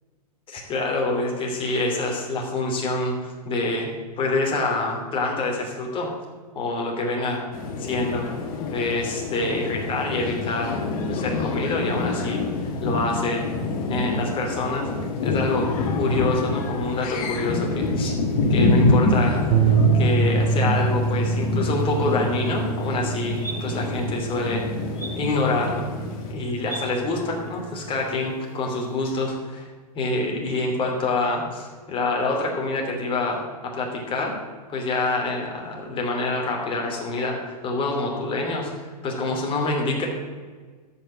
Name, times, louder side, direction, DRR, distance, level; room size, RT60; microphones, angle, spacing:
voice 1, 0.5-3.9 4.2-6.1 6.5-7.4 7.8-8.3 8.7-10.8 11.1-13.4 13.9-14.9 15.2-15.7 16.0-18.1 18.5-24.6 25.2-25.8 26.3-29.7 29.9-34.3 34.7-40.1, left 2 dB, 25° left, 0 dB, 2.9 m, -26 dB
sound 1, 7.5-26.3, left 2 dB, 60° left, 1.9 m, -26 dB
sound 2, 19.5-27.9, right 6 dB, 50° right, 0.9 m, -26 dB
sound 3, 23.3-29.6, right 2 dB, 10° right, 4.2 m, -42 dB
13.5 x 5.7 x 7.1 m, 1.5 s
hypercardioid pair, 130°, 21 cm